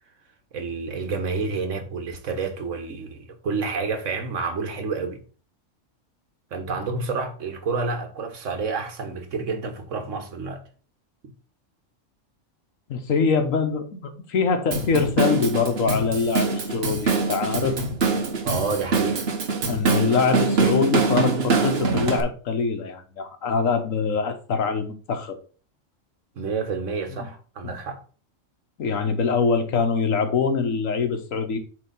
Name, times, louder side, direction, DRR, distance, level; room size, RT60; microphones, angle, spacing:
voice 1, 0.5-5.2 6.5-10.6 18.4-19.2 26.4-28.0, right 4 dB, 70° right, 1.5 m, -29 dB
voice 2, 12.9-17.8 19.7-25.4 27.6-27.7 28.8-31.6, left 5 dB, 85° left, 1.5 m, -24 dB
Drum kit / Drum, 14.7-22.2, right 4 dB, 55° right, 1.3 m, -24 dB
7.8 x 3.6 x 5.3 m
omnidirectional pair, 1.3 m